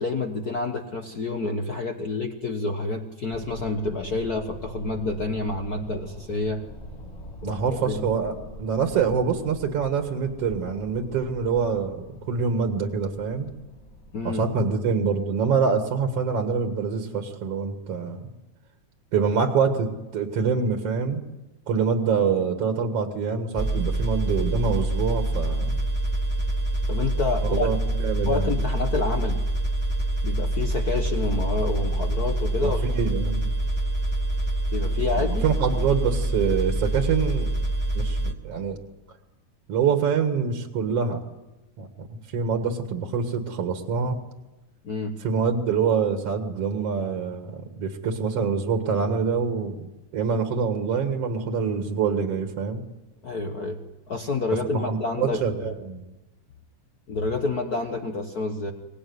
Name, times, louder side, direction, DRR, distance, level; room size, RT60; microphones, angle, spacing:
voice 1, 0.0-6.6 7.4-8.1 14.1-14.5 26.9-27.7 28.3-29.4 30.2-32.8 34.7-35.4 44.8-45.2 53.2-53.8 54.1-55.7 57.1-58.7, left 3 dB, 75° left, 5 dB, 0.8 m, -28 dB
sound 1, 3.3-14.7, equal, 20° left, 2.2 m, -43 dB
voice 2, 7.4-8.3 8.6-13.5 14.2-18.3 19.1-21.2 21.7-25.7 27.4-28.6 32.6-33.5 35.4-37.5 38.0-38.8 39.7-41.2 41.8-44.2 45.2-52.8 54.6-56.0, right 6 dB, 55° right, 5 dB, 2.4 m, -25 dB
sound 2, 23.6-38.3, right 1 dB, 5° right, 2.0 m, -26 dB
25.0 x 18.5 x 9.5 m, 1.1 s
omnidirectional pair, 3.7 m